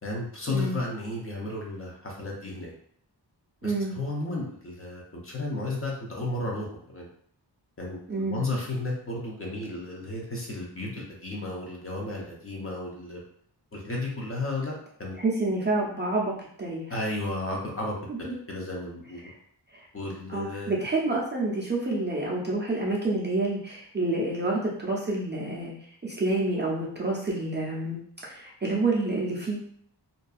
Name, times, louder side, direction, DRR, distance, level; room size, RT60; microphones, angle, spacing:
voice 1, 0.0-2.7 3.6-7.1 7.8-13.2 13.7-14.7 15.0-15.1 16.9-19.2 19.9-20.7, left 2 dB, 30° left, -2 dB, 0.6 m, -33 dB
voice 2, 3.6-3.9 8.1-8.4 15.2-16.3 16.6-16.9 18.1-18.4 19.2-19.3 19.7-19.9 20.3-25.7 26.0-29.6, right 2 dB, 25° right, -5 dB, 0.5 m, -28 dB
2.6 x 2.3 x 2.3 m, 0.62 s
wide cardioid pair, 115°, 42 cm